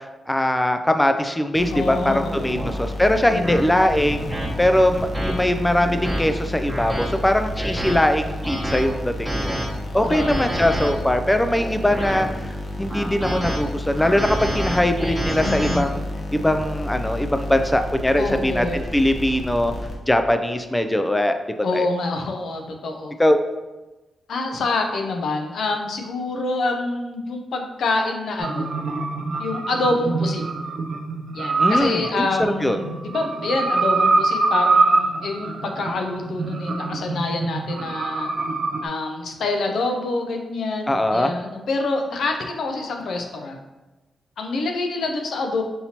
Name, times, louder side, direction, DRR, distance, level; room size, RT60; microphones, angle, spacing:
voice 1, 0.0-4.3 4.6-9.6 9.9-16.0 16.3-19.7 20.1-21.4 21.7-21.9 23.2-23.4 31.6-32.8 40.9-41.3, left 1 dB, 10° left, 7 dB, 0.3 m, -21 dB
sound 1, 1.5-20.3, left 1 dB, 55° left, 0.9 m, -31 dB
voice 2, 1.7-2.6 3.3-3.7 10.0-10.3 15.4-15.9 18.2-18.8 21.6-23.1 24.3-28.7 29.4-30.4 31.3-38.3 38.8-43.6 44.4-45.6, left 3 dB, 75° left, 4 dB, 0.5 m, -26 dB
sound 2, 1.7-1.9 2.6-2.7 3.4-3.6 4.3-4.5 5.1-5.3 5.8-6.2 6.7-7.1 7.6-7.9 8.4-8.8 9.3-9.7 10.1-10.9 11.5-12.2 12.9-13.6 14.0-15.8, right 1 dB, 10° right, 0.9 m, -28 dB
sound 3, 28.4-38.9, right 3 dB, 65° right, 0.4 m, -24 dB
5.3 x 2.9 x 2.8 m, 1.1 s
cardioid pair, 70°, 0 cm